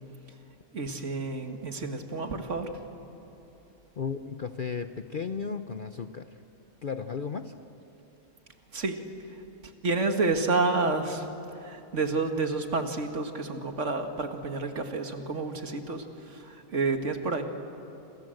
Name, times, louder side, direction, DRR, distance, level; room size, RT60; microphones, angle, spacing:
voice 1, 0.7-2.7 8.7-9.0 9.8-11.3 11.6-17.4, right 3 dB, 55° right, 6 dB, 2.1 m, -29 dB
voice 2, 4.0-6.4 6.8-7.5, left 5 dB, 45° left, 9 dB, 0.7 m, -34 dB
28.0 x 27.0 x 7.8 m, 2.9 s
omnidirectional pair, 1.5 m